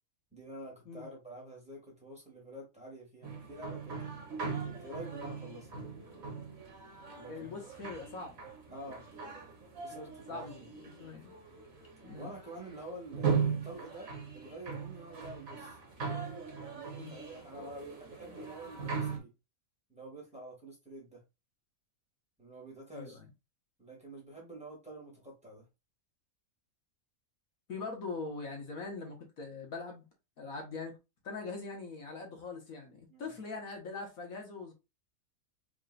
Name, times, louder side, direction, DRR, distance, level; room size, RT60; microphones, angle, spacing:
voice 1, 0.3-4.1 4.6-5.8 7.2-7.6 8.7-9.0 9.8-10.7 12.1-15.8 16.5-19.3 19.9-21.2 22.4-23.2 23.8-25.7 33.1-33.3, right 1 dB, 5° right, 2.3 m, -48 dB
sound 1, 3.2-19.2, right 5 dB, 70° right, 2.0 m, -39 dB
voice 2, 7.3-8.4 9.9-11.3 12.0-12.3 17.0-17.2 22.9-23.3 27.7-30.0 30.4-30.9 31.2-34.7, left 4 dB, 75° left, 1.9 m, -42 dB
4.9 x 3.6 x 2.5 m
omnidirectional pair, 1.5 m